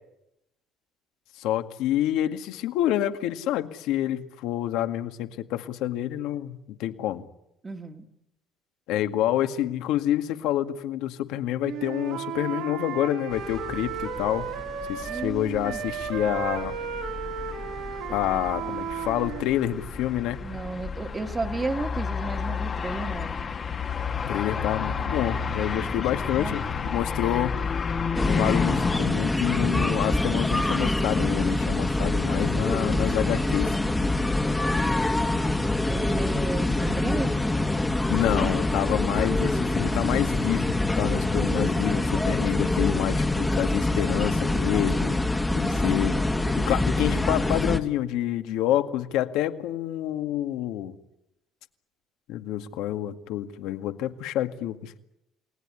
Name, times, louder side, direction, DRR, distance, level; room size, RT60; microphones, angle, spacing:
voice 1, 1.3-7.3 8.9-14.5 14.9-16.7 18.1-20.4 24.3-26.6 26.9-27.5 28.3-33.8 38.1-45.2 45.5-46.2 46.6-51.0 52.3-55.0, left 12 dB, 70° left, 8 dB, 2.0 m, -28 dB
voice 2, 7.6-8.0 15.1-15.8 18.3-18.4 20.4-23.5 25.9-26.6 35.3-37.3 45.5-45.8, right 3 dB, 15° right, 7 dB, 2.0 m, -34 dB
Wind instrument woodwind instrument, 11.6-15.3 15.6-19.5, right 8 dB, 70° right, 4.0 m, -34 dB
sound 1, 13.3-29.0, left 6 dB, 30° left, 1.5 m, -32 dB
sound 2, 28.2-47.8, left 2 dB, 5° left, 1.7 m, -25 dB
29.0 x 19.5 x 9.9 m, 0.88 s
cardioid pair, 145°, 0 cm